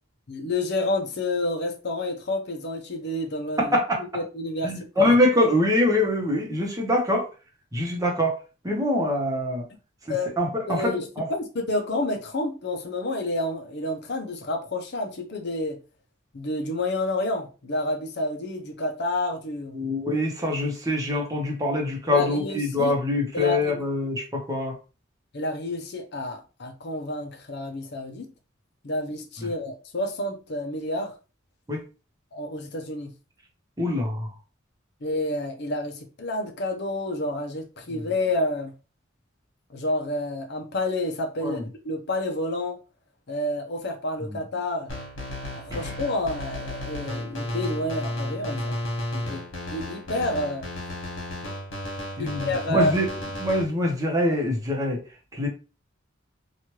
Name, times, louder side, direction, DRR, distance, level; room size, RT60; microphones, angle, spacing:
voice 1, 0.3-5.2 10.1-10.3 10.7-15.8 16.3-19.8 22.1-23.0 23.3-23.8 25.3-28.3 28.8-31.1 32.3-33.1 35.0-38.7 39.7-42.8 43.3-44.9 45.4-48.8 49.1-49.4 49.7-50.7 52.2-52.9, left 1 dB, 55° left, 0.6 m, -29 dB
voice 2, 4.6-7.2 7.7-8.3 8.6-9.6 10.4-11.3 19.7-24.7 31.7-31.8 33.8-34.3 41.4-41.7 44.3-44.4 45.7-45.8 52.2-53.1 53.4-55.0 55.3-55.5, left 1 dB, 20° right, 0.8 m, -24 dB
sound 1, 44.9-53.6, left 1 dB, 75° left, 1.4 m, -33 dB
3.0 x 2.4 x 3.0 m
head